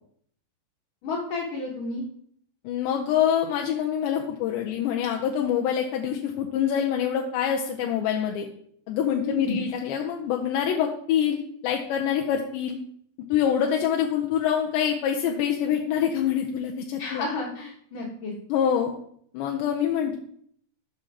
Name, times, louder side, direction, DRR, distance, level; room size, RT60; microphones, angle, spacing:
voice 1, 1.0-2.0 9.2-9.6 17.0-18.3, left 3 dB, 65° left, -4 dB, 2.1 m, -31 dB
voice 2, 2.6-8.5 8.9-12.8 13.3-17.3 18.5-18.9 19.3-20.2, left 9 dB, 85° left, 1 dB, 2.6 m, -25 dB
7.6 x 5.7 x 4.9 m, 0.64 s
omnidirectional pair, 5.5 m